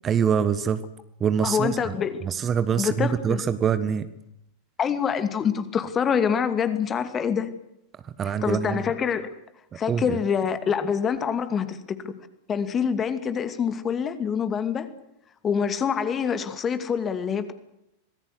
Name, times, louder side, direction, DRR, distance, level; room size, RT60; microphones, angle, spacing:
voice 1, 0.0-0.8 1.2-1.9 2.2-4.1 8.0-8.8 9.9-10.2, right 7 dB, 25° right, 13 dB, 1.4 m, -24 dB
voice 2, 1.4-2.2 2.8-3.4 4.8-7.5 8.4-9.3 9.7-11.8 12.0-12.1 12.5-14.9 15.4-17.5, left 7 dB, 25° left, 11 dB, 2.5 m, -25 dB
26.5 x 19.5 x 8.2 m, 0.81 s
figure-of-eight pair, 90°, 0 cm